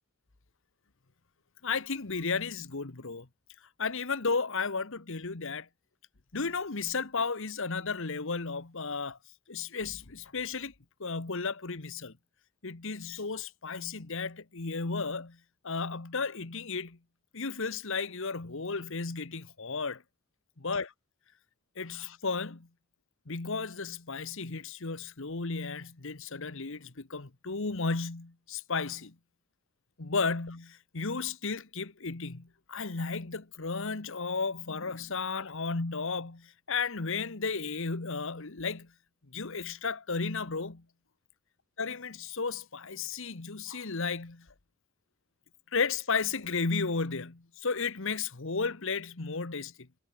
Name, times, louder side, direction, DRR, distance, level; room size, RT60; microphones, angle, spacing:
voice 1, 1.6-3.3 3.8-5.7 6.3-9.2 9.5-10.7 11.0-12.1 12.6-15.4 15.6-17.0 17.3-20.0 20.6-20.9 21.8-22.7 23.3-29.1 30.0-38.9 39.3-40.8 41.8-44.5 45.7-49.7, left 4 dB, 65° left, 1.3 m, -34 dB
head